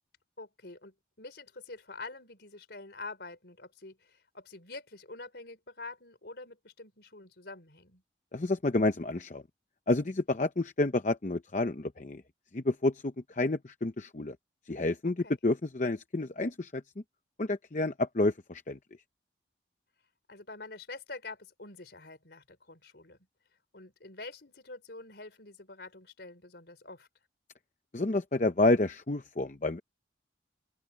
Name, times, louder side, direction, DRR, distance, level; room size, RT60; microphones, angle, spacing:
voice 1, 0.4-8.0 15.0-15.3 20.3-23.2 23.7-27.1, left 3 dB, 60° left, 4.4 m, -46 dB
voice 2, 8.3-9.4 9.9-12.2 12.5-14.4 14.7-15.2 15.4-16.8 17.4-18.8 27.9-29.8, left 2 dB, 40° left, 0.7 m, -29 dB
open air
head